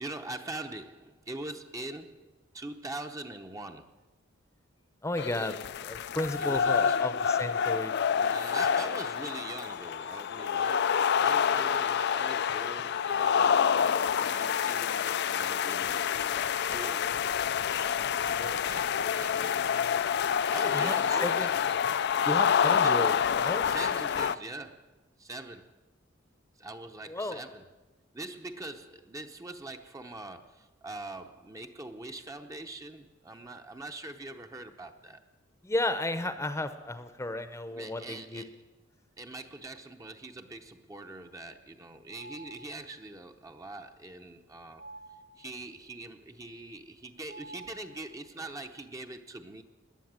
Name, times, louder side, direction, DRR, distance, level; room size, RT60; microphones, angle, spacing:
voice 1, 0.0-4.0 6.4-7.0 8.1-16.0 16.6-17.2 17.7-20.0 20.5-21.7 22.8-23.1 23.6-25.8 26.6-27.6 28.1-35.2 36.5-36.6 37.7-38.6 39.2-44.8 45.4-49.6, right 2 dB, 15° right, 6 dB, 0.8 m, -43 dB
voice 2, 5.0-7.9 20.7-21.5 22.2-23.1 23.4-23.7 27.1-27.4 35.6-38.4, left 1 dB, 15° left, 10 dB, 0.8 m, -33 dB
sound 1, 5.2-24.3, left 7 dB, 60° left, 0.4 m, -27 dB
sound 2, 42.1-43.1 44.8-45.8 47.3-48.4, right 1 dB, 65° right, 1.1 m, -49 dB
17.5 x 11.0 x 7.5 m, 1.1 s
head